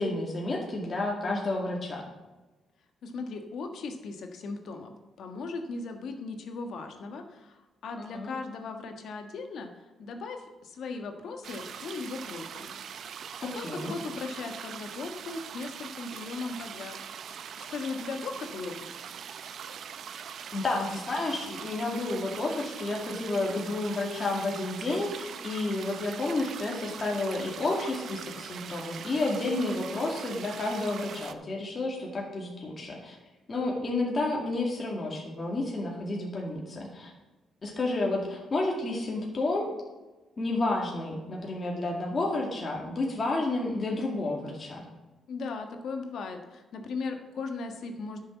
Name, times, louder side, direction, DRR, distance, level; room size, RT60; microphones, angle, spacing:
voice 1, 0.0-2.1 8.0-8.3 13.4-13.9 20.5-33.2 33.5-37.1 37.6-39.8 40.4-44.9, left 2 dB, 35° left, -2 dB, 2.2 m, -31 dB
voice 2, 3.0-4.9 5.2-12.7 13.4-17.0 17.2-18.9 45.3-48.2, left 4 dB, 65° left, 5 dB, 1.6 m, -38 dB
sound 1, 11.4-31.3, right 8 dB, 65° right, 0.7 m, -42 dB
10.5 x 6.6 x 7.2 m, 1.1 s
cardioid pair, 90°, 0 cm